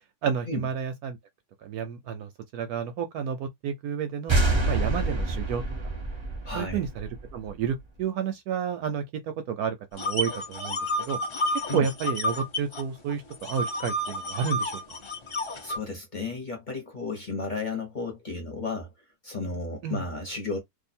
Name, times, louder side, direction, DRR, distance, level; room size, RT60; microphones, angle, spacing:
voice 1, 0.2-1.2 1.6-4.4 4.6-5.6 6.5-11.2 11.5-15.0 19.8-20.0, right 7 dB, 70° right, 0.9 m, -31 dB
sound 1, 4.3-7.8, right 2 dB, 35° right, 0.4 m, -27 dB
voice 2, 6.4-6.8 11.7-11.8 15.6-18.9 19.2-20.6, left 3 dB, 35° left, 0.9 m, -33 dB
sound 2, 10.0-12.8 13.1-15.8, left 1 dB, 50° left, 0.3 m, -30 dB
2.7 x 2.4 x 4.2 m
omnidirectional pair, 1.8 m